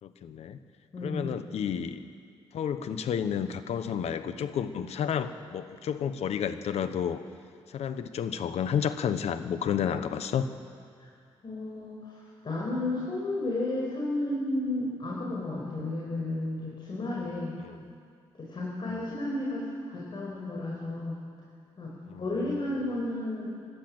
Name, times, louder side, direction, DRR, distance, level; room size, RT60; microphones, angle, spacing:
voice 1, 0.0-0.6 1.0-2.0 2.5-7.2 7.7-10.5 17.6-17.9 18.9-19.0 22.1-22.2, left 8 dB, 75° left, 11 dB, 1.1 m, -31 dB
voice 2, 0.9-1.3 11.4-17.5 18.3-21.2 21.8-21.9 22.2-23.5, left 2 dB, 45° left, -4 dB, 5.4 m, -32 dB
29.0 x 12.5 x 8.0 m, 2.2 s
cardioid pair, 80°, 11 cm